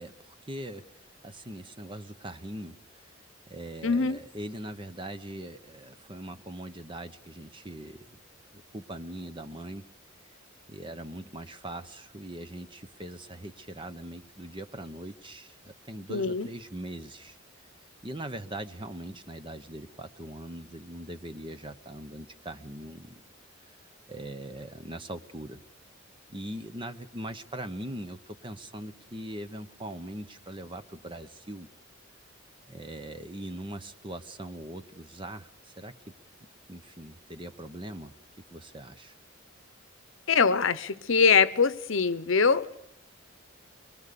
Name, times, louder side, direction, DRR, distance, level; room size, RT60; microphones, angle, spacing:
voice 1, 0.0-3.1 3.5-8.2 8.5-9.8 10.7-17.4 18.0-23.2 24.1-25.6 26.3-31.7 32.7-36.0 36.7-38.1 38.5-39.1, right 1 dB, 25° right, 10 dB, 1.0 m, -41 dB
voice 2, 3.8-4.2 16.1-16.5 40.3-42.7, left 5 dB, 70° left, 15 dB, 0.9 m, -23 dB
25.0 x 22.0 x 6.9 m, 0.72 s
head